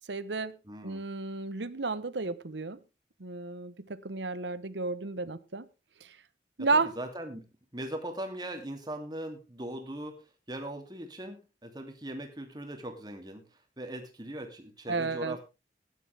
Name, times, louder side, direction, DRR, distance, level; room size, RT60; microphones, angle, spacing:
voice 1, 0.1-0.6 0.8-2.8 3.2-5.7 6.0-6.2 6.6-6.9 14.9-15.4, right 3 dB, 80° right, 1.0 m, -32 dB
voice 2, 0.6-1.0 6.6-10.2 10.5-13.5 13.8-15.4, right 1 dB, 25° right, 2.7 m, -40 dB
15.5 x 11.0 x 3.4 m
head